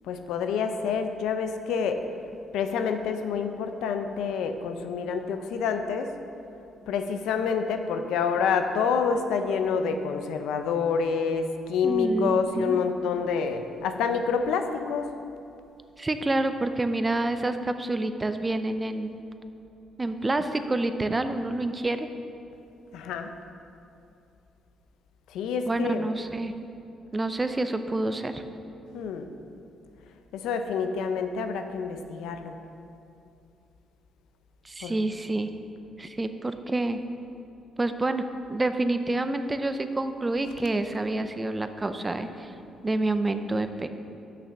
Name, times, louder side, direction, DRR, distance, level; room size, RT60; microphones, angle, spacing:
voice 1, 0.1-2.0 2.5-6.1 6.9-15.1 22.9-23.3 25.3-26.1 28.9-29.3 30.3-32.5 34.8-35.0, left 5 dB, 85° left, 7 dB, 0.5 m, -27 dB
voice 2, 11.8-12.8 16.0-19.2 20.0-22.1 25.7-26.5 27.1-28.4 34.6-35.5 36.0-37.0 37.8-42.5 42.8-43.9, right 2 dB, 20° right, 9 dB, 0.5 m, -28 dB
6.6 x 5.8 x 6.5 m, 2.6 s
cardioid pair, 90°, 0 cm